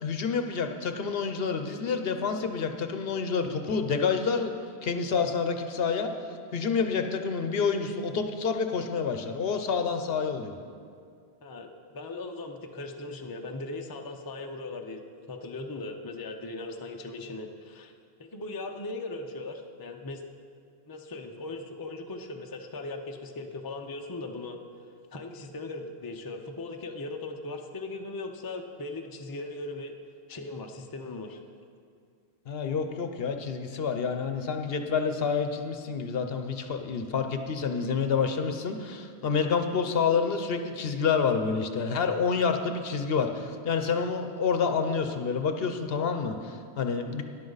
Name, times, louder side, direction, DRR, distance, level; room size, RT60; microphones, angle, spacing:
voice 1, 0.0-4.5 4.8-6.1 6.5-10.6 32.5-47.2, left 5 dB, 65° left, 6 dB, 0.9 m, -28 dB
voice 2, 11.4-15.0 15.3-17.9 18.2-20.2 20.9-24.6 25.1-29.9 30.3-31.4, left 2 dB, 25° left, 4 dB, 0.6 m, -38 dB
13.0 x 10.5 x 4.0 m, 2.2 s
omnidirectional pair, 1.1 m